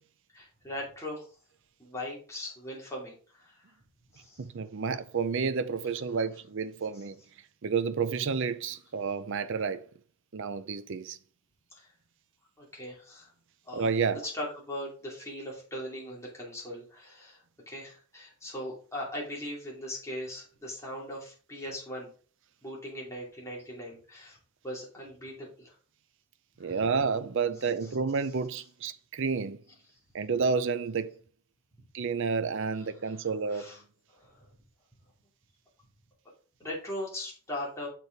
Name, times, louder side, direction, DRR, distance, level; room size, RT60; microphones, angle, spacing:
voice 1, 0.3-1.3 1.8-3.6 4.1-4.4 11.7-11.9 12.6-13.3 13.7-13.9 14.2-22.1 22.6-24.4 24.6-25.7 26.6-26.8 33.0-33.2 33.5-33.8 34.1-34.5 36.6-37.9, left 1 dB, 15° left, 2.7 m, -39 dB
voice 2, 4.4-7.2 7.6-9.8 10.3-11.2 13.7-14.2 26.6-29.6 30.1-31.1 31.9-33.7, right 5 dB, 55° right, 0.5 m, -30 dB
6.7 x 4.6 x 4.6 m
head